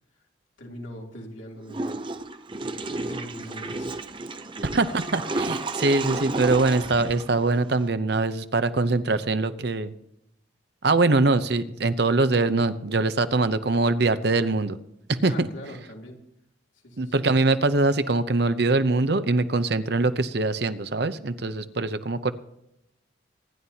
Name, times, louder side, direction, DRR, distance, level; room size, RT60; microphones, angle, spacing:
voice 1, 0.6-1.9 2.9-4.0 15.2-16.2 16.8-17.3, equal, 80° left, -1 dB, 3.2 m, -41 dB
Water / Toilet flush, 1.7-7.9, right 2 dB, 25° right, 0.6 m, -32 dB
voice 2, 4.7-9.9 10.8-14.8 15.1-15.5 17.0-22.3, right 3 dB, 55° right, 11 dB, 0.8 m, -23 dB
25.5 x 11.0 x 2.9 m, 0.82 s
head